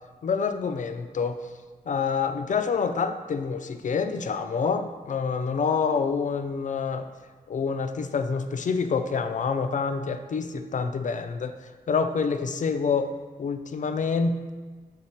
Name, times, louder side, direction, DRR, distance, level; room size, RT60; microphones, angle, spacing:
voice 1, 0.2-1.5 1.9-7.1 7.5-13.1 13.4-14.5, left 5 dB, 50° left, 8 dB, 0.4 m, -27 dB
6.5 x 3.9 x 4.3 m, 1.4 s
wide cardioid pair, 125°, 17 cm